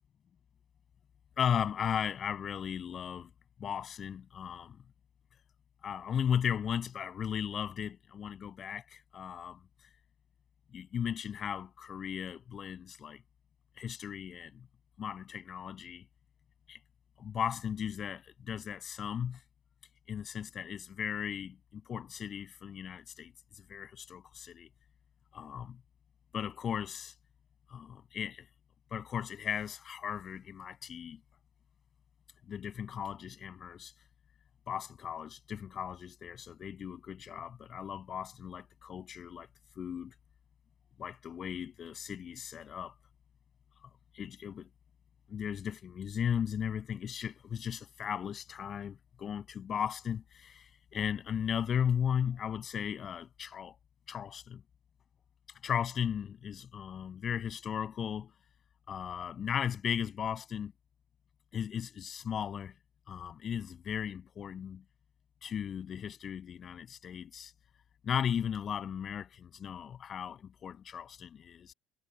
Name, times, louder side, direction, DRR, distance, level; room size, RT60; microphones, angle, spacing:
voice 1, 1.4-3.3 3.6-4.8 5.8-9.6 10.7-13.2 13.8-14.7 15.0-16.0 16.7-16.8 17.2-19.4 20.1-24.7 25.3-25.8 26.3-27.1 27.7-28.5 28.9-31.2 32.5-33.9 34.7-39.5 39.8-40.1 41.0-42.9 44.1-44.7 45.3-53.8 54.1-54.6 55.6-58.3 58.9-60.7 61.5-62.7 63.1-64.8 65.4-67.5 68.0-71.7, left 8 dB, 40° left, 7.4 m, -36 dB
figure-of-eight pair, 55°, 0 cm